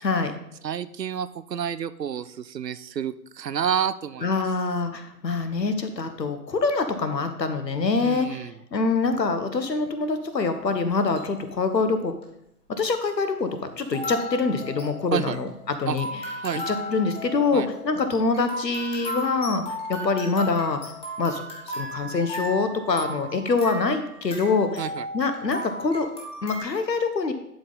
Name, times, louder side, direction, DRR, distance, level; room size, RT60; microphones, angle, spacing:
voice 1, 0.0-0.3 4.2-8.4 8.7-12.1 12.8-13.5 13.8-16.1 16.7-19.6 19.9-20.8 21.2-21.4 21.7-24.7 25.1-26.1 26.4-27.3, left 4 dB, 80° left, 8 dB, 1.3 m, -25 dB
voice 2, 0.6-4.4 8.0-8.6 15.1-15.4 15.9-16.0 16.4-16.8 17.5-17.7 24.8-25.1, right 8 dB, 75° right, 14 dB, 0.7 m, -29 dB
sound 1, 10.9-11.4 12.2-12.3 13.9-26.6, equal, 10° left, 1.3 m, -36 dB
11.0 x 4.3 x 4.0 m, 0.80 s
figure-of-eight pair, 130°, 49 cm